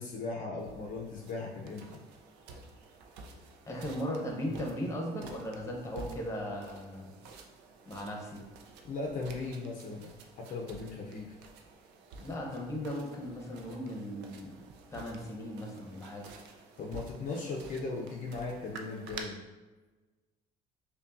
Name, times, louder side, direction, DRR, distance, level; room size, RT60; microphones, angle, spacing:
voice 1, 0.0-2.0 8.8-11.4 16.8-19.4, left 3 dB, 50° left, 0 dB, 0.5 m, -38 dB
sound 1, 0.6-19.2, right 4 dB, 90° right, 0.4 m, -51 dB
voice 2, 3.7-7.1 7.9-8.4 12.2-14.6 14.9-16.2, equal, 15° left, 0 dB, 0.8 m, -37 dB
5.3 x 2.2 x 2.5 m, 1.2 s
cardioid pair, 110°, 17 cm